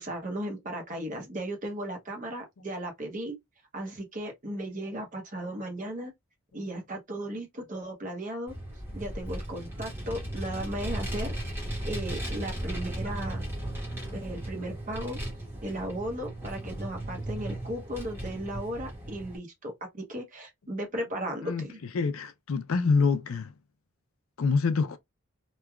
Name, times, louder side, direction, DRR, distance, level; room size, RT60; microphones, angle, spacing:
voice 1, 0.0-3.4 3.7-6.1 6.5-8.5 8.9-13.4 14.1-15.2 15.6-21.8, right 1 dB, 35° right, 0.8 m, -36 dB
Vehicle, 8.5-19.4, right 1 dB, 10° right, 1.0 m, -36 dB
voice 2, 21.9-23.5 24.4-25.0, left 4 dB, 70° left, 0.4 m, -26 dB
3.1 x 2.3 x 2.2 m
head